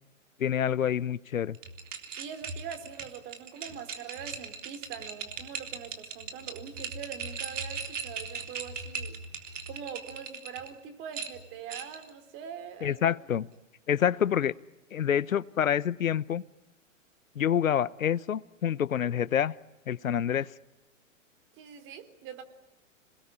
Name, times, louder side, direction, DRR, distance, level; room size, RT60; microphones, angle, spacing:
voice 1, 0.4-1.6 12.8-13.5 13.9-14.5 14.9-16.4 17.4-19.5 19.9-20.5, left 9 dB, 85° left, 18 dB, 0.9 m, -27 dB
sound 1, 1.5-10.7 11.1-12.1, right 5 dB, 65° right, 3.7 m, -39 dB
voice 2, 2.1-9.2 9.7-13.1 21.6-22.4, right 8 dB, 30° right, 8 dB, 3.6 m, -43 dB
28.0 x 20.5 x 9.9 m, 1.0 s
hypercardioid pair, 125°, 40 cm